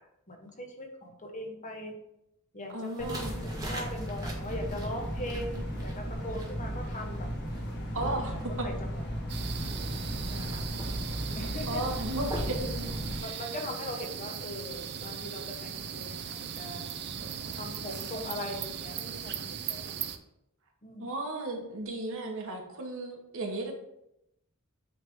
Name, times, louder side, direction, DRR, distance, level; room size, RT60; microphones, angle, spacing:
voice 1, 0.3-1.9 2.5-3.2 3.4-7.3 7.9-8.1 8.3-9.7 10.3-10.6 11.3-11.8 12.6-16.9 17.5-20.0 20.8-21.1, left 1 dB, 35° left, 2 dB, 1.1 m, -40 dB
voice 2, 2.7-3.3 7.9-8.7 11.7-12.7 13.1-13.4 21.0-23.7, right 2 dB, 65° right, 2 dB, 1.1 m, -35 dB
sound 1, 2.8-13.5, right 1 dB, 15° right, 1.4 m, -45 dB
sound 2, 3.0-13.2, equal, 50° left, 1.4 m, -35 dB
sound 3, 9.3-20.2, right 8 dB, 50° right, 0.5 m, -38 dB
8.5 x 3.4 x 3.6 m, 0.82 s
head